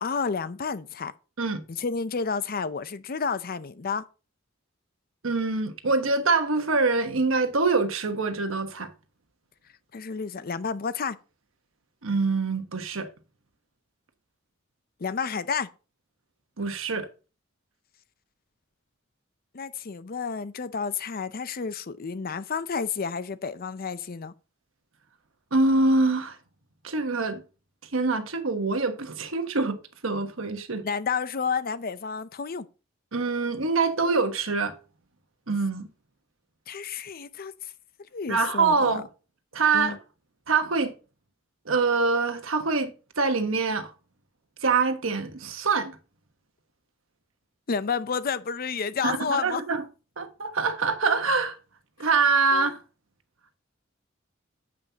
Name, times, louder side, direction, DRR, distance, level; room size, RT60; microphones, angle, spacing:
voice 1, 0.0-1.1 1.7-4.0 9.9-11.2 15.0-15.7 19.5-24.3 30.8-32.7 36.7-37.7 38.1-39.0 39.7-40.0 47.7-49.6 52.5-52.8, left 5 dB, 45° left, 0.6 m, -30 dB
voice 2, 5.2-8.9 12.0-13.1 16.6-17.1 25.5-26.4 26.8-27.4 27.9-29.8 30.0-30.8 33.1-34.8 35.5-35.9 38.3-39.0 39.5-40.0 40.5-40.9 41.6-42.9 43.2-43.9 44.6-46.0 49.0-49.8 50.2-51.6 52.0-52.8, right 4 dB, 75° right, 1.2 m, -24 dB
9.2 x 7.7 x 2.9 m
head